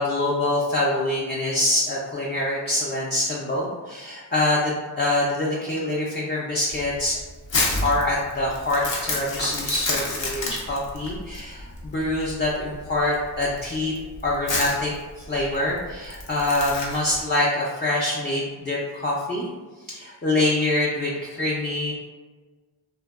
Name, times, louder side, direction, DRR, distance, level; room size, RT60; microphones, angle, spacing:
voice 1, 0.0-7.2 7.8-13.9 14.2-19.5 19.9-21.9, left 2 dB, 25° left, -5 dB, 0.4 m, -25 dB
Crumpling crinkling, 6.7-17.2, left 2 dB, 75° left, 0.6 m, -30 dB
2.6 x 2.2 x 2.3 m, 1.3 s
wide cardioid pair, 40°, 45 cm